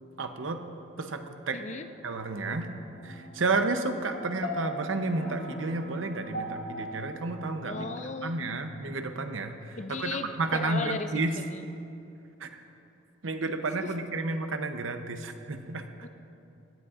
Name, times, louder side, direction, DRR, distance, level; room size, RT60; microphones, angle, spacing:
voice 1, 0.2-0.6 1.0-1.6 2.0-2.7 3.0-7.8 8.2-11.4 12.4-12.6 13.2-15.9, right 3 dB, 80° right, 7 dB, 0.8 m, -31 dB
voice 2, 1.5-1.9 7.6-8.6 9.8-11.1 11.4-11.7 13.8-13.9 16.0-16.1, left 4 dB, 35° left, 9 dB, 0.4 m, -36 dB
sound 1, 1.9-7.9, equal, 75° left, 2.1 m, -40 dB
18.0 x 12.5 x 2.5 m, 2.7 s
head